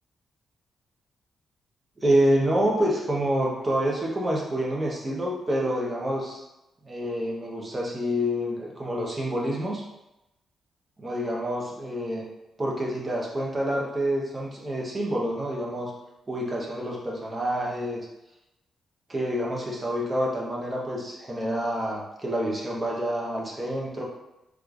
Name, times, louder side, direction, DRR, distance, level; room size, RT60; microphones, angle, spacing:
voice 1, 2.0-6.4 6.9-9.8 11.0-12.3 12.6-15.9 16.3-18.0 19.1-24.0, equal, 30° right, -3 dB, 0.9 m, -27 dB
3.5 x 3.2 x 2.5 m, 0.94 s
cardioid pair, 70°, 0 cm